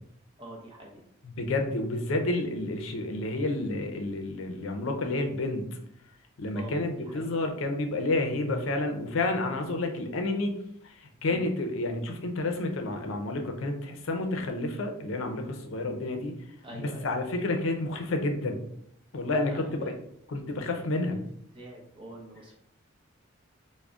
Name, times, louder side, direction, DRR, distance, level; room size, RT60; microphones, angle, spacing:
voice 1, 0.4-1.0 6.5-7.4 11.3-11.5 16.6-17.3 19.4-20.0 21.1-21.2 21.5-22.6, right 1 dB, 25° right, -1 dB, 0.7 m, -45 dB
voice 2, 1.2-5.7 6.4-10.6 10.8-16.4 16.7-18.6 19.1-19.9 20.3-21.2, left 2 dB, 70° left, 4 dB, 0.5 m, -30 dB
3.6 x 2.1 x 3.5 m, 0.72 s
head